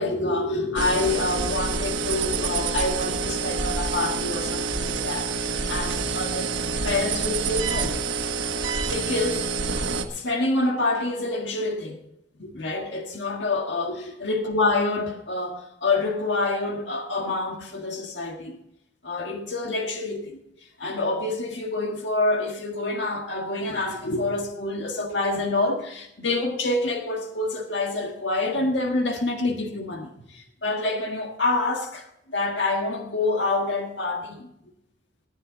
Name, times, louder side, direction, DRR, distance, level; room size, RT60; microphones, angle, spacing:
voice 1, 0.0-6.5 6.8-8.0 8.8-9.5 10.1-12.0 12.4-18.6 19.0-20.4 20.8-34.5, left 2 dB, 70° left, 1.7 m, -27 dB
sound 1, 0.8-10.1, right 4 dB, 80° right, 1.3 m, -27 dB
18.5 x 9.1 x 3.9 m
head